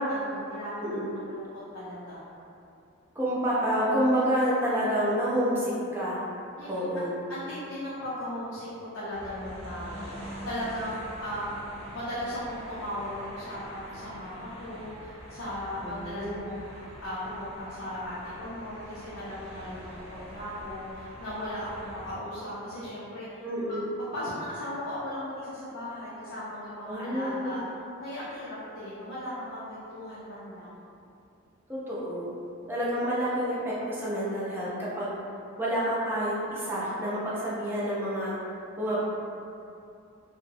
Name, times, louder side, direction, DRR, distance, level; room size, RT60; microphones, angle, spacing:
voice 1, 0.1-0.8 1.1-1.5 1.7-2.2 6.6-10.2 10.4-20.0 20.3-23.4 23.7-27.6 28.0-30.7, left 1 dB, 75° left, -10 dB, 0.5 m, -37 dB
voice 2, 0.8-1.2 3.2-6.2 6.7-7.1 15.8-16.4 23.4-23.9 26.8-27.5 31.7-32.3 32.7-35.1 35.6-38.4 38.8-39.0, equal, 10° right, -9 dB, 0.4 m, -28 dB
sound 1, 9.1-22.1, equal, 65° right, 0.8 m, -44 dB
2.7 x 2.0 x 2.6 m, 2.6 s
head